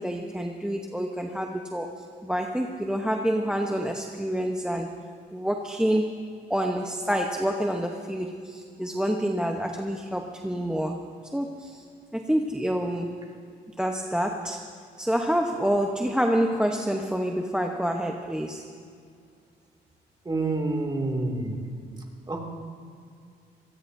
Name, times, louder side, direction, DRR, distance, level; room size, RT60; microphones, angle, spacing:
voice 1, 0.0-4.9 5.3-6.2 6.5-11.8 12.1-13.2 13.8-14.7 15.0-18.7, equal, 5° right, 3 dB, 0.9 m, -27 dB
voice 2, 20.2-21.7 22.3-22.4, right 2 dB, 20° right, 1 dB, 2.4 m, -28 dB
25.0 x 17.0 x 2.7 m, 2.3 s
cardioid pair, 90°, 20 cm